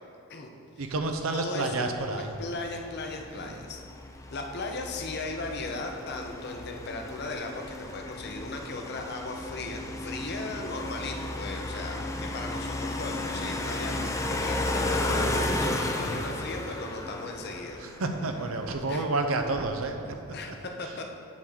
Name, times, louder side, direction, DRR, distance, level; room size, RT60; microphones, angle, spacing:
voice 1, 0.8-2.4 3.3-3.6 17.8-20.1, right 2 dB, 70° right, 5 dB, 0.6 m, -30 dB
voice 2, 1.3-3.8 4.3-17.8 18.9-19.0 20.3-21.0, left 3 dB, 50° left, 3 dB, 0.7 m, -37 dB
sound 1, 2.8-19.0, left 1 dB, 15° left, 0.3 m, -33 dB
7.3 x 3.8 x 6.2 m, 2.5 s
head